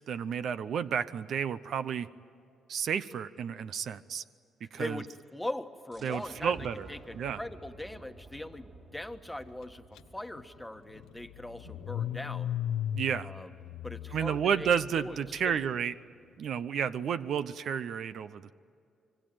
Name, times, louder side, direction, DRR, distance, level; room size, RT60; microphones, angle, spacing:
voice 1, 0.1-2.1 2.7-4.2 4.7-5.0 6.0-6.9 7.1-7.4 12.9-13.3 14.1-15.9 16.4-18.6, right 7 dB, 65° right, 13 dB, 0.7 m, -31 dB
voice 2, 4.7-12.6 13.2-13.5 13.8-14.7 15.0-15.6, left 1 dB, 5° left, 7 dB, 1.4 m, -41 dB
sound 1, 5.9-11.4, right 1 dB, 45° right, 3.8 m, -52 dB
Car / Engine starting, 10.0-10.1 10.4-15.6, left 10 dB, 90° left, 0.6 m, -37 dB
25.5 x 24.0 x 9.3 m, 2.5 s
cardioid pair, 90°, 0 cm